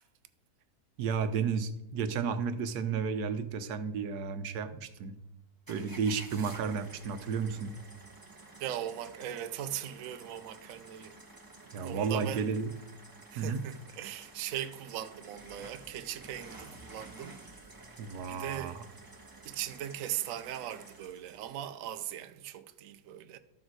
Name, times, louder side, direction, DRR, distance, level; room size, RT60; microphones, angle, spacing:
voice 1, 1.0-5.2 5.7-7.8 11.7-12.7 13.4-13.6 18.0-18.8, right 6 dB, 80° right, 1.3 m, -32 dB
sound 1, 5.7-21.6, right 2 dB, 15° right, 1.2 m, -52 dB
voice 2, 8.6-11.2 11.8-12.4 13.3-17.4 18.3-18.8 19.4-23.4, right 11 dB, 65° right, 0.9 m, -39 dB
12.5 x 6.5 x 4.6 m
omnidirectional pair, 1.7 m